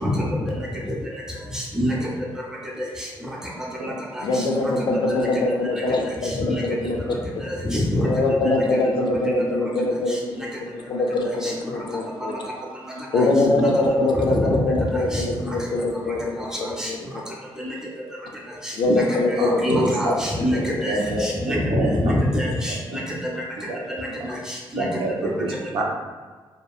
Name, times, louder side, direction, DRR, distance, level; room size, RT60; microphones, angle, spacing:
voice 1, 1.5-1.9 7.7-8.1 11.4-11.5 14.3-14.6 15.1-15.2 16.8-16.9 17.6-17.7 18.9-19.0 19.3-19.4 19.6-23.0 24.7-24.8, equal, 5° right, -4 dB, 0.6 m, -24 dB
voice 2, 4.2-7.4 8.0-12.4 13.1-17.2 18.7-20.6, left 2 dB, 55° left, 1 dB, 0.4 m, -23 dB
voice 3, 19.4-20.2 20.5-22.1 23.7-23.8 24.8-25.8, right 2 dB, 85° right, -1 dB, 0.5 m, -27 dB
2.7 x 2.4 x 2.3 m, 1.5 s
wide cardioid pair, 125°, 9 cm